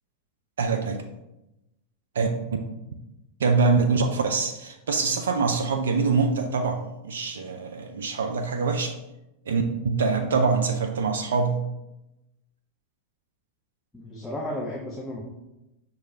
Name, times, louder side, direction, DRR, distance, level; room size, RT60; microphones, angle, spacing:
voice 1, 0.6-1.1 2.1-2.3 3.4-9.0 9.5-11.6, right 4 dB, 65° right, 5 dB, 0.3 m, -24 dB
voice 2, 13.9-15.2, left 1 dB, 10° left, -4 dB, 0.6 m, -33 dB
6.1 x 2.3 x 2.7 m, 0.93 s
figure-of-eight pair, 90°, 0 cm